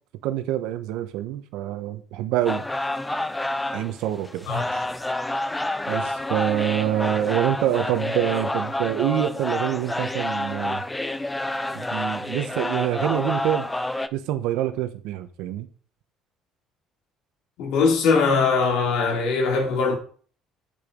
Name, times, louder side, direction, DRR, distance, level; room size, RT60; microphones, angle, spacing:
voice 1, 0.2-2.6 3.7-4.5 5.9-10.8 11.7-13.7 14.1-15.7, right 12 dB, 85° right, 1.1 m, -26 dB
sound 1, 2.5-14.1, left 1 dB, 10° left, 0.6 m, -28 dB
voice 2, 17.6-20.0, left 4 dB, 75° left, 3.2 m, -21 dB
8.3 x 6.9 x 5.4 m
cardioid pair, 130°, 0 cm